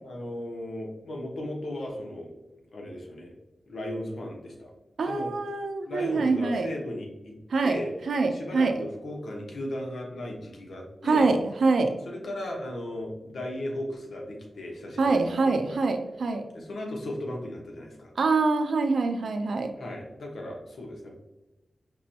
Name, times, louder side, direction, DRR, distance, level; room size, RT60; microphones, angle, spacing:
voice 1, 0.0-2.3 2.7-3.3 3.7-4.7 5.0-5.3 5.9-7.4 7.6-7.9 8.3-11.3 12.0-15.8 16.5-18.1 19.8-21.1, left 1 dB, 85° left, 0 dB, 1.0 m, -36 dB
voice 2, 5.0-6.7 7.5-7.8 8.1-8.9 11.0-12.0 15.0-16.5 18.2-19.7, right 3 dB, 85° right, 5 dB, 0.5 m, -25 dB
5.2 x 3.0 x 2.8 m, 1.0 s
wide cardioid pair, 70°, 0 cm